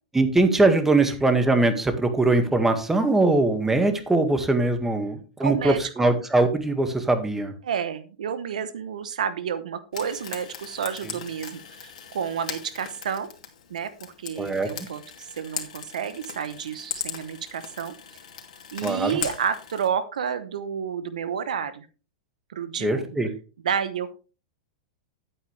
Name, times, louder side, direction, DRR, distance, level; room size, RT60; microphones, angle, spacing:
voice 1, 0.1-7.5 14.4-14.9 18.8-19.2 22.8-23.3, right 2 dB, 10° right, 7 dB, 1.8 m, -22 dB
voice 2, 5.4-6.2 7.6-13.3 13.7-17.9 18.7-21.9 22.5-23.1 23.6-24.2, right 7 dB, 80° right, 13 dB, 1.0 m, -30 dB
Frying (food), 9.9-19.9, left 8 dB, 70° left, 2.5 m, -39 dB
10.5 x 8.9 x 3.3 m, 0.33 s
hypercardioid pair, 110°, 4 cm